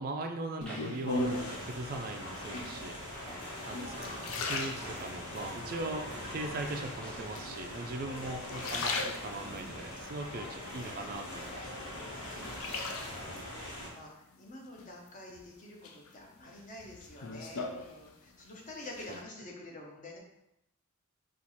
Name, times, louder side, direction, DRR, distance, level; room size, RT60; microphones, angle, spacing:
voice 1, 0.0-3.3 3.7-11.7 19.1-19.2, right 2 dB, 40° right, 4 dB, 0.4 m, -40 dB
sound 1, 0.6-1.7 2.4-2.9 3.5-5.4 5.9-6.5 7.4-8.0 8.4-9.7 10.2-11.4 11.8-13.4 14.8-15.4 15.8-18.5 18.7-19.2, left 2 dB, 65° left, 0.5 m, -38 dB
sound 2, 0.6-8.0, equal, 5° left, 0.6 m, -52 dB
sound 3, 1.1-13.9, left 1 dB, 85° left, 1.3 m, -42 dB
voice 2, 3.2-3.7 8.0-8.8 10.2-11.1 12.3-20.2, left 2 dB, 35° left, -1 dB, 0.8 m, -49 dB
4.4 x 2.4 x 4.1 m, 0.85 s
head